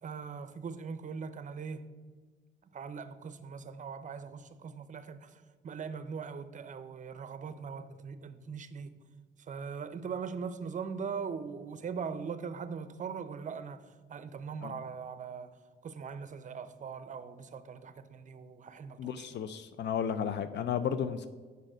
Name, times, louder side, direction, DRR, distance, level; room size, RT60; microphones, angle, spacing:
voice 1, 0.0-1.9 2.7-8.9 9.4-19.3, right 6 dB, 40° right, 0.6 m, -41 dB
voice 2, 19.0-21.3, left 8 dB, 60° left, 0.4 m, -33 dB
6.4 x 5.3 x 5.0 m
cardioid pair, 90°, 20 cm